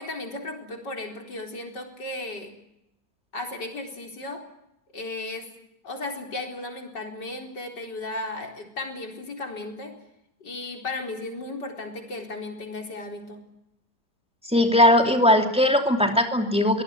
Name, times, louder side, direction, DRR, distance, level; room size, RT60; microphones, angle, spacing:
voice 1, 0.0-2.5 3.3-4.4 4.9-5.5 5.8-9.9 10.4-13.4, left 2 dB, 75° left, 3 dB, 4.9 m, -35 dB
voice 2, 14.5-16.8, left 1 dB, 5° right, 4 dB, 2.7 m, -19 dB
23.5 x 18.0 x 9.6 m, 0.83 s
omnidirectional pair, 1.9 m